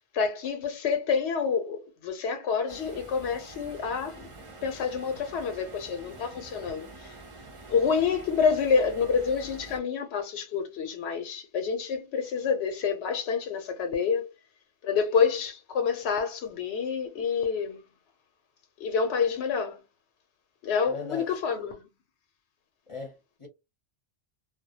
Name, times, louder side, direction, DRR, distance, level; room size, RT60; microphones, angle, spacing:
voice 1, 0.0-4.3 4.6-7.2 7.7-14.3 14.8-17.8 18.8-19.8 20.6-21.9, left 6 dB, 85° left, 0.8 m, -28 dB
sound 1, 2.7-9.8, right 2 dB, 35° right, 0.6 m, -46 dB
voice 2, 20.9-21.3 22.9-23.5, left 4 dB, 35° left, 0.7 m, -38 dB
2.2 x 2.1 x 2.7 m
omnidirectional pair, 1.1 m